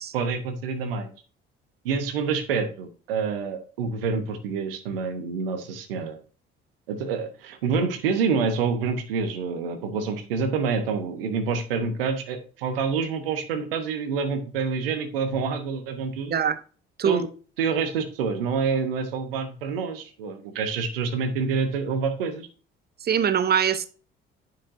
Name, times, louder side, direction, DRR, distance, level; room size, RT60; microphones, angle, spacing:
voice 1, 0.1-1.1 1.8-6.2 6.9-16.3 17.0-17.3 17.6-22.5, right 5 dB, 70° right, 1.0 m, -27 dB
voice 2, 23.0-23.9, right 8 dB, 35° right, 0.8 m, -22 dB
10.0 x 5.9 x 2.6 m
figure-of-eight pair, 50°, 29 cm